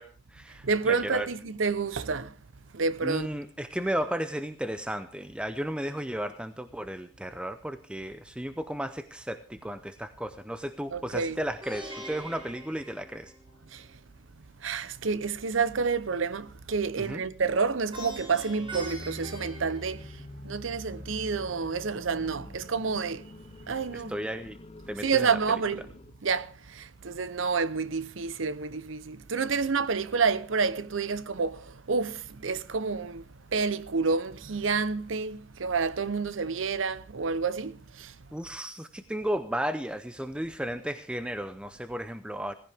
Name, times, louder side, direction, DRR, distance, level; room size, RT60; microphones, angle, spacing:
voice 1, 0.0-1.3 3.0-13.3 17.0-17.2 23.9-24.6 24.9-25.6 38.3-42.5, right 1 dB, 5° right, 0.6 m, -34 dB
voice 2, 0.6-2.3 2.7-3.3 10.9-11.4 13.7-13.9 14.6-20.1 20.4-23.3 23.7-24.1 25.0-25.8 26.2-33.2 33.5-38.1, right 5 dB, 75° right, 0.8 m, -29 dB
Plucked string instrument, 11.6-13.8 17.9-20.5, right 1 dB, 25° right, 4.5 m, -43 dB
sound 1, 18.5-26.2, left 1 dB, 30° left, 0.7 m, -45 dB
18.0 x 15.5 x 3.5 m
head